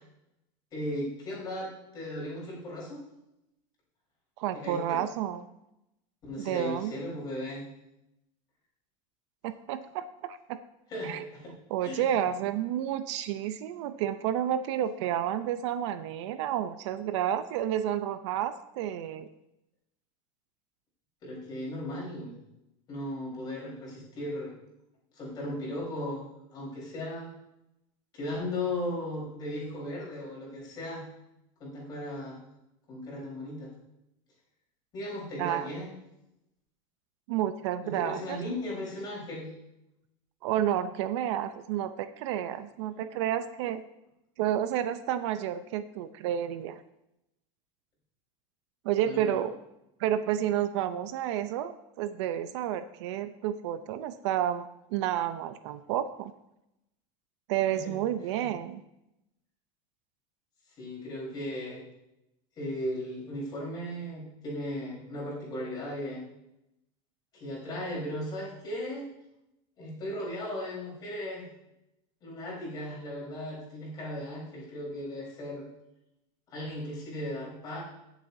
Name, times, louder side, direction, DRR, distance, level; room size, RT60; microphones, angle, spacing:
voice 1, 0.7-3.0 4.5-5.0 6.2-7.6 10.9-11.5 11.8-12.1 21.2-22.4 22.9-24.5 25.1-27.3 28.1-31.1 31.6-32.4 32.9-33.7 34.9-35.9 37.8-39.5 49.0-49.4 57.7-58.0 58.3-58.5 60.8-61.8 62.6-66.2 67.3-69.1 69.8-71.5 72.2-75.6 76.5-77.8, left 1 dB, 25° left, -4 dB, 4.0 m, -36 dB
voice 2, 4.4-5.5 6.5-6.9 9.4-10.6 11.0-11.3 11.7-19.3 35.4-35.7 37.3-38.4 40.4-43.8 44.4-46.8 48.8-49.5 50.0-56.3 57.5-58.8, right 11 dB, 65° right, 11 dB, 0.6 m, -30 dB
16.5 x 7.1 x 2.7 m, 0.86 s
supercardioid pair, 170°, 16 cm